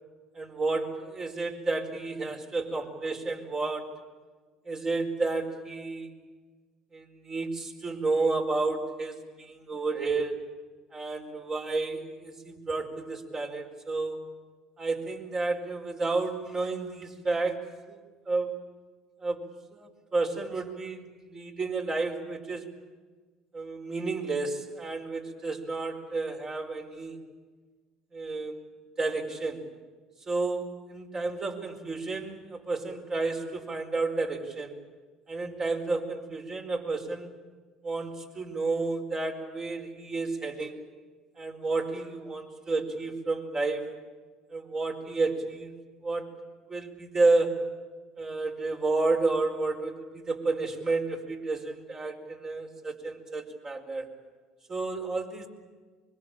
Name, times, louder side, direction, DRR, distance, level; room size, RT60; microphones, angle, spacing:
voice 1, 0.3-3.9 4.7-6.1 6.9-10.4 10.9-14.4 14.8-18.0 18.3-18.6 19.2-22.7 23.5-27.2 28.1-28.6 29.0-29.7 30.3-34.7 35.3-37.3 37.8-40.7 41.4-43.9 44.5-45.7 46.0-46.3 46.7-47.7 48.2-54.1 54.7-55.5, right 3 dB, 35° right, 2 dB, 4.8 m, -31 dB
24.5 x 23.0 x 9.0 m, 1.4 s
supercardioid pair, 80°, 2 cm